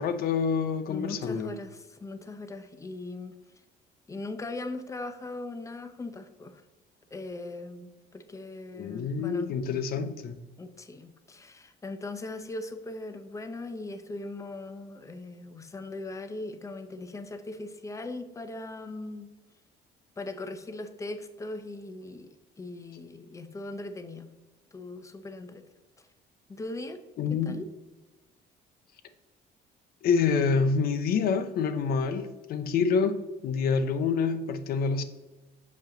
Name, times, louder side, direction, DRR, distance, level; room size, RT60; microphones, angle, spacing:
voice 1, 0.0-1.6 8.7-10.4 27.2-27.6 30.0-35.0, left 5 dB, 65° left, 0.7 m, -27 dB
voice 2, 0.9-3.4 4.1-6.6 7.1-9.5 10.6-19.3 20.2-22.3 22.6-24.3 24.7-25.6 26.5-27.0 27.3-27.7, left 2 dB, 20° left, 0.7 m, -39 dB
7.1 x 5.3 x 3.8 m
cardioid pair, 110°, 17 cm